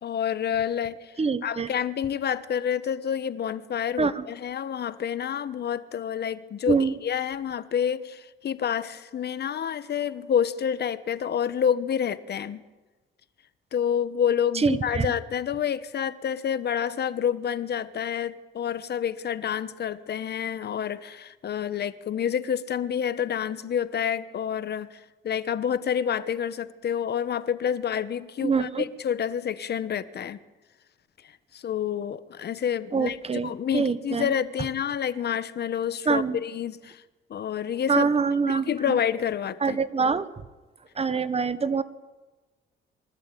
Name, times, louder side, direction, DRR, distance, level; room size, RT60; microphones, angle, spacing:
voice 1, 0.0-12.6 13.7-30.4 31.5-33.2 33.4-37.0 37.3-38.1 38.4-39.8, left 8 dB, 55° left, 14 dB, 1.1 m, -28 dB
voice 2, 1.2-1.7 4.0-4.2 6.7-6.9 14.5-15.1 28.4-28.8 32.9-34.3 36.1-36.4 37.9-39.0 39.6-40.3 41.0-41.8, right 5 dB, 30° right, 14 dB, 1.2 m, -25 dB
23.5 x 14.0 x 9.1 m, 1.2 s
cardioid pair, 90°, 20 cm